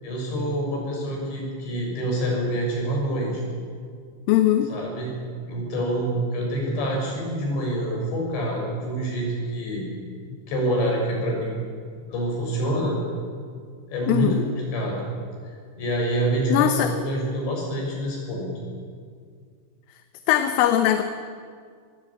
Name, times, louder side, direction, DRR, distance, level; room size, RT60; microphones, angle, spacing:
voice 1, 0.0-3.4 4.7-5.1 5.5-9.8 10.5-11.6 12.1-13.0 13.9-15.0 15.8-18.5, right 1 dB, 65° left, -1 dB, 8.8 m, -26 dB
voice 2, 4.3-4.7 14.1-14.5 16.5-16.9 20.3-21.0, left 12 dB, 85° left, 8 dB, 3.5 m, -20 dB
25.0 x 21.0 x 8.8 m, 2.1 s
omnidirectional pair, 5.7 m